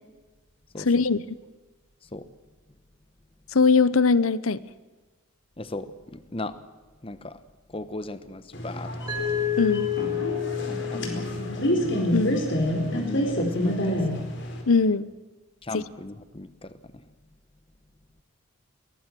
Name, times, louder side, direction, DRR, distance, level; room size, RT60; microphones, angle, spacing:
voice 1, 0.8-1.2 3.5-4.6 9.6-9.9 12.1-12.4 14.7-15.1 15.7-15.8, left 4 dB, 80° left, 18 dB, 0.9 m, -21 dB
voice 2, 5.6-6.6 7.0-7.4 7.7-9.2 10.6-11.7 12.9-14.3 15.6-17.0, left 2 dB, 25° left, 13 dB, 1.0 m, -38 dB
sound 1, 8.5-14.6, equal, 55° left, 4.6 m, -27 dB
Mallet percussion, 9.1-12.0, left 10 dB, 20° right, 7.2 m, -30 dB
22.0 x 19.0 x 7.6 m, 1.3 s
head